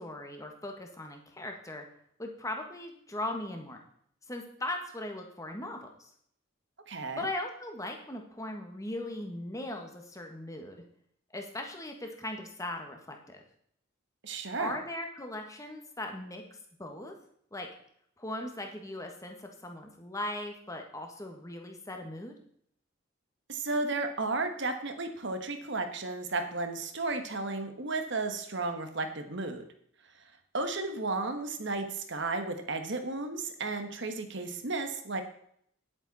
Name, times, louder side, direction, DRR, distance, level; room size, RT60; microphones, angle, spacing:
voice 1, 0.0-1.8 2.2-3.8 4.3-6.1 7.2-10.8 11.3-13.4 14.6-17.1 17.5-17.7 18.2-22.3, left 1 dB, 15° left, 3 dB, 1.5 m, -39 dB
voice 2, 6.9-7.2 14.2-14.8 23.5-29.6 30.5-35.2, right 3 dB, 55° right, 7 dB, 1.3 m, -33 dB
10.5 x 8.7 x 4.2 m, 0.67 s
head